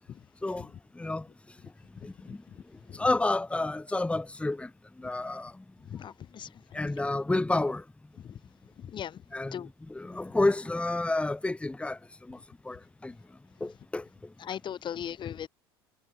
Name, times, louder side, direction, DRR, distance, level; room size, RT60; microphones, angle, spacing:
voice 1, 1.0-1.3 2.0-2.4 2.9-4.7 5.0-5.6 6.7-7.8 9.3-12.4 12.6-13.1 13.6-14.1, left 2 dB, 10° left, 1.8 m, -30 dB
voice 2, 5.9-6.5 8.8-9.2 9.5-9.7 14.4-15.5, left 9 dB, 35° left, 2.1 m, -37 dB
figure-of-eight pair, 70°, 13 cm